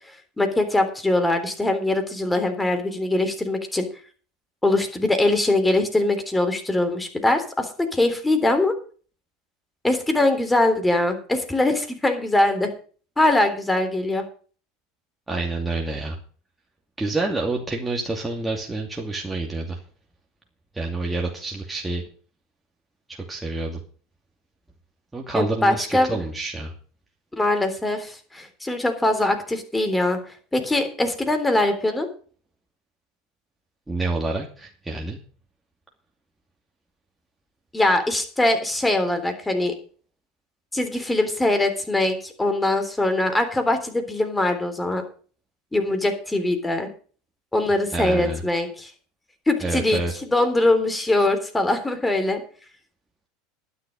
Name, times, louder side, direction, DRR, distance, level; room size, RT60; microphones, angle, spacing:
voice 1, 0.4-3.9 4.6-8.7 9.8-12.7 13.2-14.2 25.3-26.1 27.3-32.1 37.7-39.8 40.7-45.0 45.7-46.9 47.5-48.9 49.5-52.4, left 2 dB, 10° left, 7 dB, 3.5 m, -22 dB
voice 2, 15.3-16.2 17.0-19.8 20.7-22.0 23.1-23.8 25.1-26.7 33.9-35.2 47.9-48.4 49.6-50.1, right 3 dB, 10° right, 0 dB, 2.6 m, -28 dB
11.5 x 10.5 x 5.3 m, 0.41 s
hypercardioid pair, 90°, 0 cm